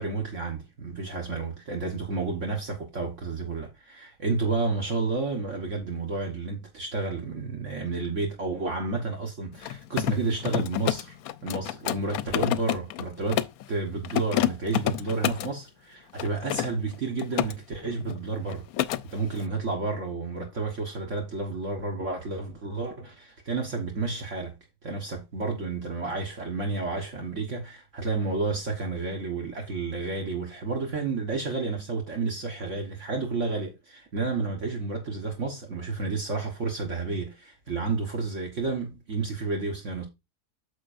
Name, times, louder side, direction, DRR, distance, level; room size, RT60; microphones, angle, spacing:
voice 1, 0.0-11.2 11.4-18.7 19.1-24.6 24.8-40.1, right 3 dB, 50° right, 1.7 m, -31 dB
Mechanisms, 9.5-13.6 14.0-15.5 16.2-17.5 17.8-18.2 18.5-19.0, left 13 dB, 70° left, 1.0 m, -29 dB
9.3 x 6.8 x 2.6 m
omnidirectional pair, 1.7 m